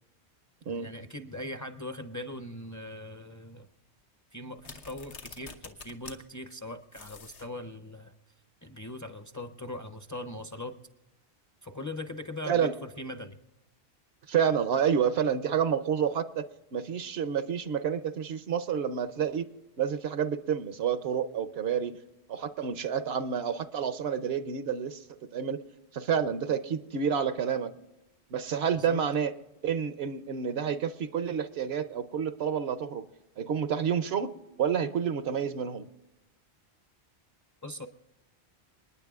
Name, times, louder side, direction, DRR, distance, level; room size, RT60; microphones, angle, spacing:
voice 1, 0.7-3.7 4.3-8.1 8.6-10.8 11.6-13.4 28.7-29.0 37.6-37.9, left 1 dB, 20° left, 8 dB, 0.5 m, -40 dB
sound 1, 4.6-6.2 6.5-6.6 6.9-7.5, left 4 dB, 85° left, 1.4 m, -46 dB
voice 2, 14.3-19.5 19.8-21.9 22.3-25.0 25.3-25.6 25.9-27.7 28.3-29.3 29.6-33.0 33.4-34.3 34.6-35.9, right 7 dB, 70° right, 12 dB, 0.9 m, -29 dB
28.5 x 9.8 x 2.4 m, 0.98 s
omnidirectional pair, 1.1 m